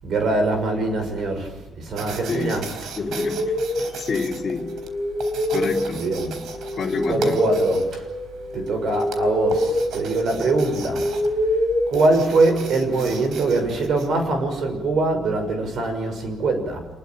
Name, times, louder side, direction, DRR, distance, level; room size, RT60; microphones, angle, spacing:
voice 1, 0.0-3.0 3.8-4.0 5.9-6.4 7.1-8.1 8.5-11.1 11.5-11.6 11.9-16.9, right 3 dB, 55° right, 7 dB, 6.2 m, -23 dB
sound 1, 1.9-14.1, right 6 dB, 85° right, 4.0 m, -39 dB
voice 2, 2.3-2.6 2.9-3.5 4.0-4.7 5.5-6.0 6.7-7.4, left 4 dB, 30° left, -2 dB, 3.4 m, -27 dB
sound 2, 3.1-12.8, left 1 dB, 25° right, 5.2 m, -26 dB
27.0 x 21.0 x 9.1 m, 1.1 s
cardioid pair, 175°, 0 cm